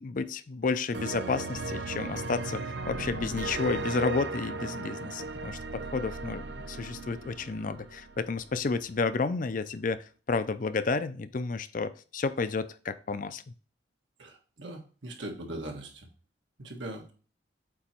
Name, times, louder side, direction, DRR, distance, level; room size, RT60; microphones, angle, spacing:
voice 1, 0.0-2.6 2.9-13.4, left 4 dB, 45° left, 12 dB, 0.5 m, -31 dB
sound 1, 0.9-8.6, right 3 dB, 65° right, 0.6 m, -37 dB
voice 2, 14.2-16.1 16.6-17.1, right 1 dB, 85° right, 1 dB, 1.6 m, -40 dB
8.3 x 3.0 x 4.4 m, 0.38 s
head